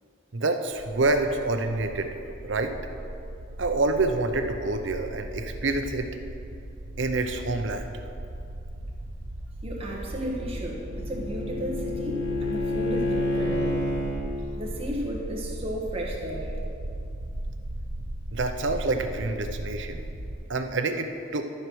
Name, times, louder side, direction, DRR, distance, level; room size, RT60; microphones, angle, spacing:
voice 1, 0.3-2.1 2.4-2.7 3.6-6.1 7.0-7.9 18.3-20.0 20.5-21.4, right 2 dB, 65° right, 6 dB, 0.7 m, -27 dB
sound 1, 0.7-20.4, right 1 dB, 85° right, 1.0 m, -37 dB
voice 2, 9.6-13.8 14.6-16.5, right 1 dB, 30° right, -2 dB, 1.4 m, -34 dB
Bowed string instrument, 10.2-14.2, left 2 dB, 60° left, 1.4 m, -29 dB
12.5 x 4.6 x 6.2 m, 2.7 s
head